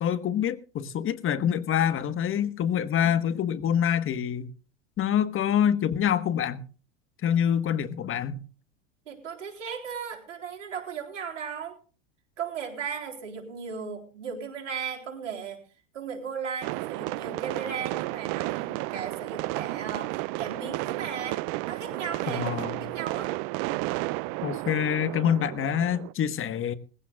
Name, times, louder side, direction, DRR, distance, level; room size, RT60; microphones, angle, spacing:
voice 1, 0.0-4.5 5.0-6.6 7.2-8.4 22.3-22.9 24.4-26.7, left 9 dB, 35° left, 1.4 m, -26 dB
voice 2, 9.1-11.8 12.4-15.6 15.9-22.6 22.9-23.3, right 6 dB, 85° right, 3.9 m, -36 dB
sound 1, 16.6-26.1, right 21 dB, 50° right, 0.5 m, -32 dB
20.0 x 15.5 x 2.4 m
hypercardioid pair, 100°, 37 cm